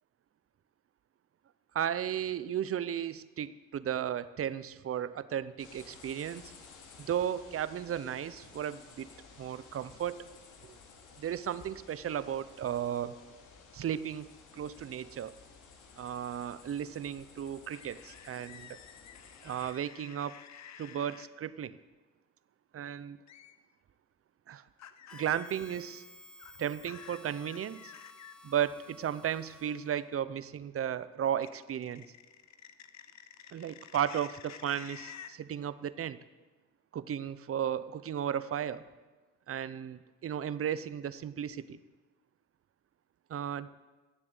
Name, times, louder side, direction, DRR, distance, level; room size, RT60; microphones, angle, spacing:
voice 1, 1.7-6.5 7.0-9.1 9.4-10.2 11.2-13.2 13.7-15.3 16.0-18.8 19.4-20.4 20.8-21.8 22.7-23.2 24.5-24.6 25.1-26.0 26.6-27.9 28.4-32.1 33.5-36.2 36.9-38.8 39.5-41.8 43.3-43.7, right 9 dB, 50° right, 15 dB, 0.7 m, -35 dB
sound 1, 5.6-19.7, left 5 dB, 80° left, 2.6 m, -55 dB
sound 2, 17.7-21.3 23.3-23.5 24.8-25.8 26.4-28.3 31.4-35.3, left 9 dB, 65° left, 1.0 m, -51 dB
Harmonica, 25.1-30.1, left 1 dB, 5° left, 1.0 m, -54 dB
17.0 x 7.5 x 8.1 m, 1.3 s
cardioid pair, 90°, 30 cm